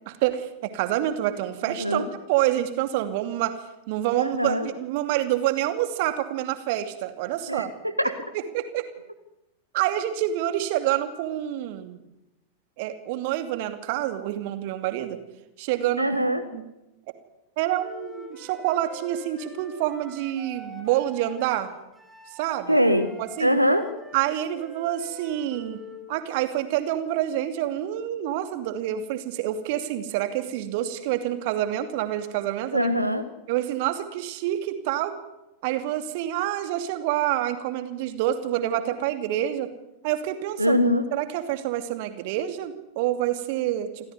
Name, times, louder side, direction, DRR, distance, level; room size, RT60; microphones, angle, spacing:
voice 1, 0.1-3.5 3.9-7.7 8.3-8.9 9.7-12.0 12.8-15.2 15.6-16.1 16.5-16.6 17.6-21.7 22.4-22.8 23.2-23.5 24.1-25.8 26.1-32.9 33.5-35.2 35.6-39.7 40.0-40.8 41.1-44.1, right 13 dB, 50° right, 8 dB, 2.7 m, -27 dB
voice 2, 4.2-4.7 7.5-7.6 8.0-8.1 16.0-16.4 22.7-23.1 23.4-23.9 32.7-33.2 40.6-41.0, equal, 90° right, 7 dB, 1.6 m, -22 dB
Wind instrument woodwind instrument, 17.7-26.1, equal, 5° right, 6.4 m, -45 dB
27.5 x 15.5 x 9.6 m, 0.93 s
figure-of-eight pair, 90°, 0 cm